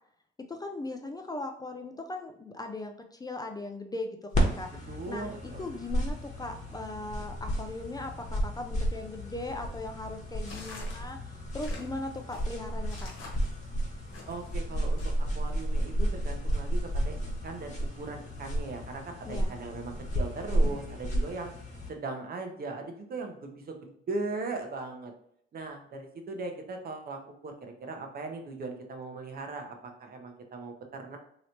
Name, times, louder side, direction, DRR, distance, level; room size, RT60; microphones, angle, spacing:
voice 1, 0.5-11.2 11.5-13.1 19.2-19.5, left 2 dB, 20° left, 4 dB, 0.4 m, -39 dB
sound 1, 4.3-21.9, equal, 40° left, 1.0 m, -32 dB
voice 2, 4.9-5.6 14.3-17.1 17.4-21.5 21.9-25.1 25.5-31.2, right 3 dB, 50° right, 4 dB, 0.7 m, -39 dB
sound 2, 10.4-14.6 15.0-15.5, left 3 dB, 85° left, 1.1 m, -48 dB
3.1 x 2.9 x 2.8 m, 0.69 s
cardioid pair, 90°, 20 cm